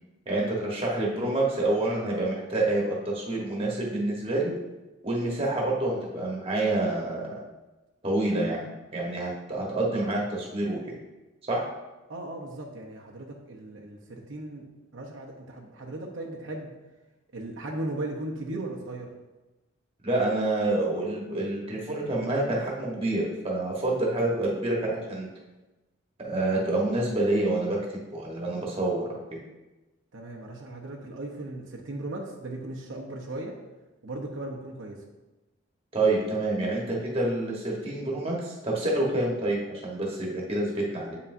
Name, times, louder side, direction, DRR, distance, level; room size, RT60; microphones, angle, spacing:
voice 1, 0.3-4.5 5.0-7.2 8.0-8.6 8.9-10.8 11.5-11.7 20.0-25.3 26.2-27.8 28.1-29.1 35.9-41.2, right 2 dB, 25° right, -3 dB, 1.2 m, -27 dB
voice 2, 12.1-14.7 14.9-16.7 17.3-19.1 30.1-33.5 34.0-35.0, right 2 dB, 65° right, -1 dB, 0.8 m, -37 dB
8.4 x 5.6 x 2.6 m, 1.1 s
head